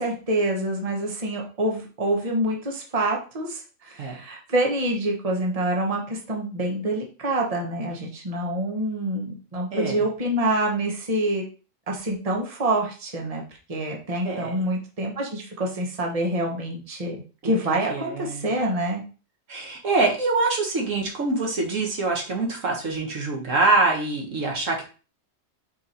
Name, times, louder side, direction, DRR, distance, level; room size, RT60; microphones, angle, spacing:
voice 1, 0.0-11.4 11.9-13.4 13.7-19.0, right 1 dB, 30° right, 0 dB, 1.3 m, -26 dB
voice 2, 9.7-10.0 14.2-14.6 17.4-17.5 17.9-18.5 19.5-24.8, right 3 dB, 70° right, 1 dB, 1.8 m, -24 dB
4.8 x 4.7 x 4.3 m, 0.36 s
omnidirectional pair, 1.4 m